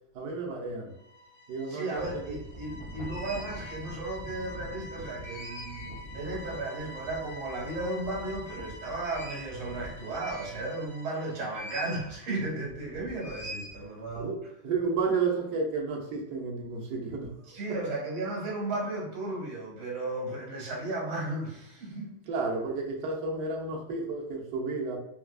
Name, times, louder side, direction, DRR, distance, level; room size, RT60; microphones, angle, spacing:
voice 1, 0.1-0.9 1.5-1.9 2.1-2.3 14.1-17.3 22.3-25.0, right 4 dB, 65° right, 0 dB, 1.1 m, -31 dB
sound 1, 0.9-11.7, left 1 dB, 65° left, 0.9 m, -47 dB
voice 2, 1.7-14.3 17.5-22.2, right 2 dB, 80° right, -3 dB, 2.1 m, -35 dB
sound 2, 1.9-11.0 11.5-12.1 12.4-14.2, equal, 45° right, 0.9 m, -43 dB
4.6 x 2.3 x 2.3 m, 0.81 s
omnidirectional pair, 2.3 m